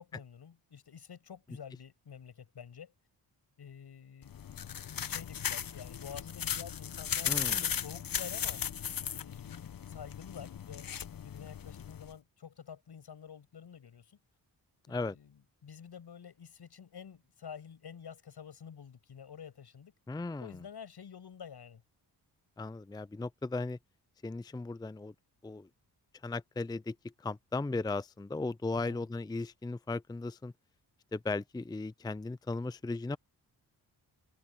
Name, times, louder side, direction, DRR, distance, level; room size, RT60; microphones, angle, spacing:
voice 1, 0.0-2.9 3.6-4.4 5.0-8.6 9.0-10.9 11.2-14.2 14.9-19.9 20.4-21.8 28.7-29.1, left 7 dB, 70° left, 6.7 m, -49 dB
sound 1, 4.2-12.1, left 8 dB, 55° left, 1.1 m, -37 dB
voice 2, 7.2-7.7 14.9-15.2 20.1-20.6 22.6-23.8 24.2-25.1 25.4-25.7 26.2-30.5 31.1-33.2, left 3 dB, 10° left, 0.5 m, -36 dB
cardioid pair, 60°, 41 cm